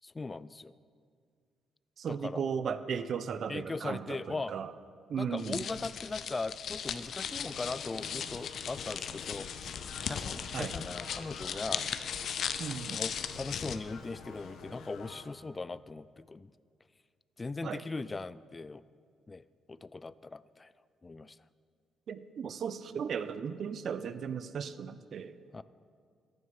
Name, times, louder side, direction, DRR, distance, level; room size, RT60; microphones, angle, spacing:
voice 1, 0.0-0.7 2.1-2.5 3.5-4.6 5.2-9.5 10.0-11.9 12.9-16.5 17.4-18.8 19.3-19.4 19.7-20.7 21.0-21.4 25.5-25.6, left 3 dB, 25° left, 17 dB, 0.3 m, -39 dB
voice 2, 2.0-4.7 5.1-5.7 10.5-10.7 12.6-13.0 17.6-17.8 22.1-25.4, right 7 dB, 60° right, 13 dB, 0.6 m, -36 dB
sound 1, 5.4-13.8, left 8 dB, 65° left, 0.6 m, -38 dB
sound 2, 7.2-15.2, left 5 dB, 80° left, 1.2 m, -49 dB
14.0 x 9.6 x 5.4 m, 2.1 s
cardioid pair, 90°, 0 cm